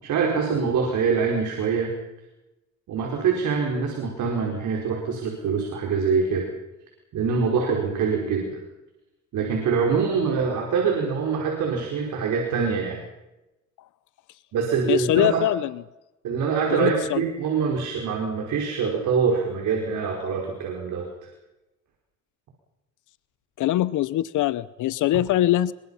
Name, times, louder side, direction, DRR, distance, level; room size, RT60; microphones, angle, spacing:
voice 1, 0.0-1.9 2.9-6.5 7.1-8.6 9.3-13.0 14.5-15.4 16.2-21.1, right 5 dB, 80° right, 1 dB, 5.2 m, -24 dB
voice 2, 14.9-15.8 16.7-17.2 23.6-25.7, left 14 dB, 80° left, 17 dB, 0.8 m, -23 dB
26.5 x 23.0 x 5.7 m, 0.98 s
cardioid pair, 90°, 30 cm